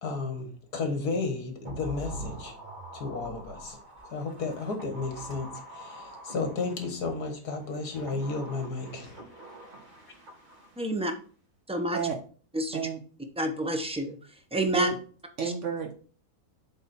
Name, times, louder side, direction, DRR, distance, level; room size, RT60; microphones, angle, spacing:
voice 1, 0.0-2.6 2.9-3.8 4.1-9.2, left 3 dB, 75° left, 5 dB, 2.0 m, -33 dB
sound 1, 1.7-7.1 7.7-11.0 11.3-11.4, right 1 dB, 30° right, 1.6 m, -45 dB
voice 2, 10.8-11.1 11.7-12.0 12.5-12.9 13.4-14.2 14.5-14.9 15.4-15.5, right 1 dB, 10° right, 4 dB, 0.4 m, -28 dB
voice 3, 15.4-15.9, right 6 dB, 55° right, 3 dB, 1.1 m, -31 dB
7.6 x 3.8 x 4.3 m, 0.41 s
omnidirectional pair, 1.7 m